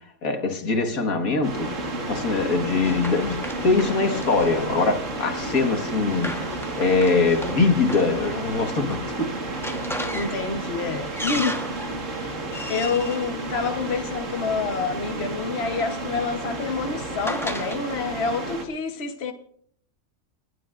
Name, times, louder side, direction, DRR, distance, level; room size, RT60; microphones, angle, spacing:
voice 1, 0.2-1.7 2.1-6.4 6.8-9.4, left 4 dB, 80° left, 2.0 m, -23 dB
sound 1, 1.4-18.7, right 2 dB, 60° right, 2.1 m, -32 dB
Run, 1.7-14.3 15.3-17.8, equal, ahead, 1.0 m, -37 dB
voice 2, 10.1-11.6 12.0-12.4 12.7-19.3, left 4 dB, 50° left, 1.3 m, -28 dB
29.5 x 11.0 x 2.5 m
omnidirectional pair, 1.5 m